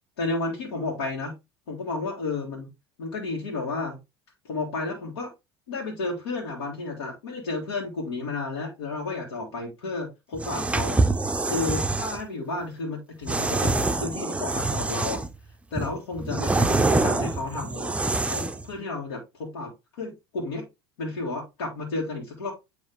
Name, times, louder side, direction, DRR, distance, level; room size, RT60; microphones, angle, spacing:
voice 1, 0.2-1.3 1.7-2.7 3.0-4.0 4.4-5.3 5.7-11.0 11.4-15.2 15.7-18.0 18.3-19.2 19.5-19.7 20.0-20.7 21.0-22.5, left 3 dB, 75° left, -1 dB, 1.9 m, -32 dB
sound 1, 10.3-12.2 13.3-15.4 15.8-18.7, right 3 dB, 10° right, 0.5 m, -25 dB
8.9 x 3.1 x 3.5 m, 0.23 s
hypercardioid pair, 75°, 13 cm